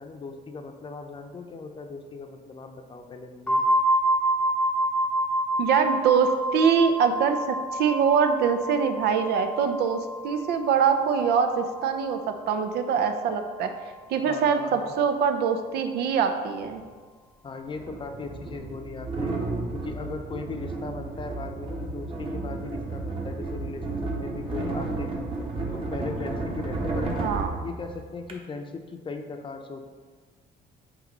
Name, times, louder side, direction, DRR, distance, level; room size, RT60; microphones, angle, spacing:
voice 1, 0.0-3.6 14.2-14.9 17.4-19.4 19.7-25.3 25.7-27.3 27.6-29.8, left 3 dB, 30° left, 5 dB, 0.7 m, -38 dB
sound 1, 3.5-13.1, right 1 dB, 5° left, 0.9 m, -28 dB
voice 2, 5.6-13.7 14.1-16.8 27.2-27.5, right 6 dB, 75° right, 7 dB, 0.7 m, -24 dB
sound 2, 16.7-16.8 17.7-28.3, right 2 dB, 30° right, 1.2 m, -32 dB
8.0 x 3.0 x 5.3 m, 1.5 s
cardioid pair, 110°, 17 cm